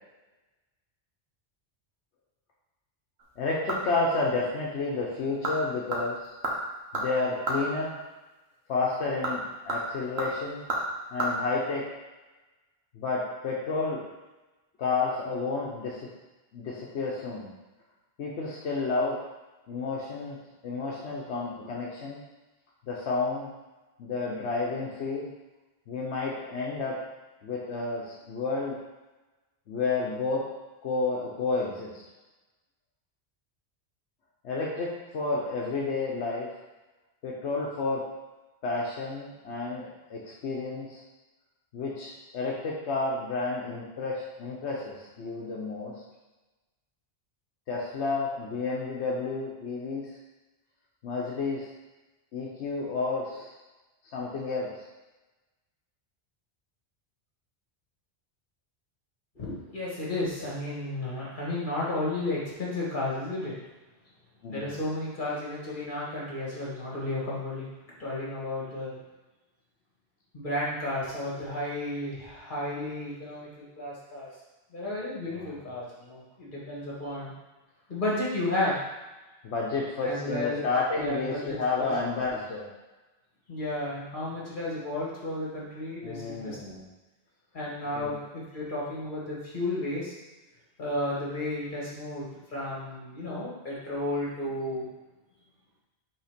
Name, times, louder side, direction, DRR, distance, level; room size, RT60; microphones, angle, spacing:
sound 1, 3.2-4.1 4.4-4.5 5.2-5.6 5.9-7.7 9.0-11.3 11.6-11.7, right 2 dB, 70° right, 1.4 m, -32 dB
voice 1, 3.4-6.2 6.9-7.9 8.7-10.6 11.1-11.8 12.9-14.0 14.8-16.1 16.5-17.5 18.2-19.2 19.7-20.4 20.6-22.2 22.9-23.5 24.0-25.3 25.9-27.0 27.4-28.8 29.7-30.5 30.8-32.0 34.4-36.5 37.2-38.1 38.6-41.0 41.7-45.9 47.7-50.0 51.0-51.7 52.3-53.5 54.1-54.7 64.4-64.8 75.3-75.6 79.4-82.7 86.0-86.8 87.9-88.1, left 3 dB, 85° left, -3 dB, 1.1 m, -31 dB
voice 2, 59.4-63.5 64.5-67.7 68.0-68.9 70.3-74.3 74.7-77.3 77.9-78.8 80.0-80.6 81.0-81.9 83.5-86.6 87.5-90.1 90.8-94.8, left 1 dB, 50° left, -6 dB, 2.2 m, -33 dB
5.6 x 3.5 x 5.1 m, 1.1 s
omnidirectional pair, 1.1 m